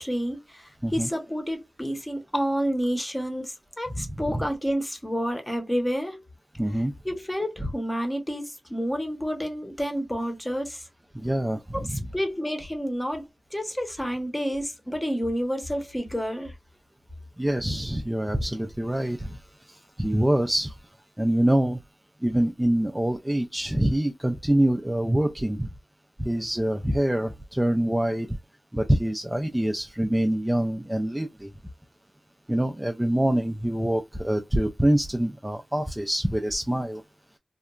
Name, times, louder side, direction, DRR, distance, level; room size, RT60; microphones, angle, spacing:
voice 1, 0.0-6.2 6.7-10.9 11.7-16.5, equal, 10° left, 0.8 m, -29 dB
voice 2, 4.0-4.5 6.6-6.9 11.1-12.1 17.4-19.4 19.7-20.7 21.2-21.8 22.2-25.7 26.2-28.4 28.7-31.5 32.5-37.0, right 1 dB, 10° right, 0.4 m, -25 dB
2.8 x 2.2 x 2.3 m
wide cardioid pair, 80°, 0 cm